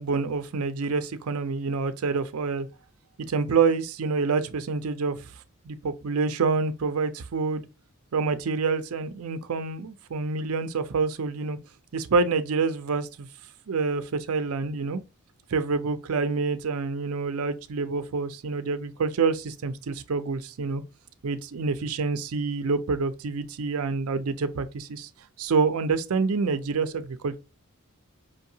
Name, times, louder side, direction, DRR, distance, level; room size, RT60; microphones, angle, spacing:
voice 1, 0.0-2.7 3.3-5.3 5.7-7.6 8.1-11.6 11.9-13.3 13.7-15.0 15.5-20.8 21.2-25.1 25.4-27.4, right 4 dB, 75° right, 0.5 m, -27 dB
5.2 x 2.8 x 2.6 m
head